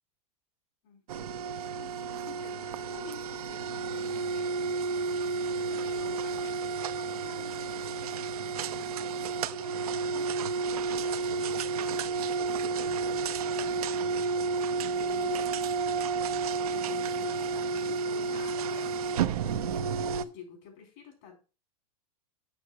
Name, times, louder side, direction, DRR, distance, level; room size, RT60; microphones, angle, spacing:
sound 1, 1.1-20.2, right 4 dB, 75° right, 0.6 m, -31 dB
voice 1, 1.7-9.2 9.5-9.8 10.1-13.0 13.5-14.4 15.0-21.4, left 7 dB, 55° left, 2 dB, 4.1 m, -50 dB
7.0 x 5.9 x 4.6 m, 0.33 s
hypercardioid pair, 110°, 19 cm